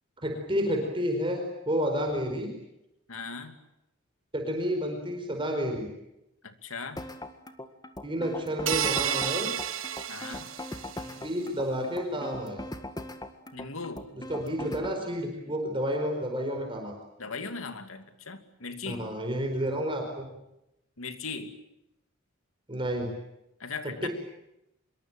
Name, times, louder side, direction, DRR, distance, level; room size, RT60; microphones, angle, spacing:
voice 1, 0.2-2.5 4.3-5.9 8.0-9.5 11.0-12.6 14.3-16.9 18.9-20.3 22.7-23.1 24.0-24.1, equal, 25° right, 3 dB, 4.6 m, -30 dB
voice 2, 3.1-3.6 6.4-7.0 10.1-10.5 13.5-14.1 17.2-19.1 21.0-21.5 23.6-24.1, left 4 dB, 85° left, 8 dB, 2.7 m, -38 dB
sound 1, 7.0-15.0, left 1 dB, 20° left, 1.8 m, -40 dB
sound 2, 8.7-11.1, right 10 dB, 70° right, 1.4 m, -31 dB
26.0 x 23.0 x 9.1 m, 0.87 s
head